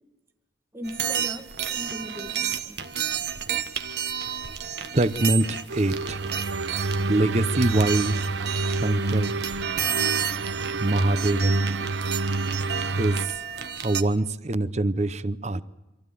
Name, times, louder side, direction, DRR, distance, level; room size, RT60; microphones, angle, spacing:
voice 1, 0.7-2.8 4.2-5.0, equal, 15° right, 5 dB, 1.5 m, -40 dB
sound 1, 0.8-14.0, right 8 dB, 60° right, 1.5 m, -31 dB
voice 2, 4.9-6.2 7.1-8.2 8.8-9.3 10.8-11.6 13.0-13.2 13.8-15.6, right 1 dB, 35° right, 15 dB, 0.8 m, -24 dB
sound 2, 5.7-13.3, right 3 dB, 80° right, 0.8 m, -28 dB
25.0 x 16.0 x 9.3 m, 1.0 s
head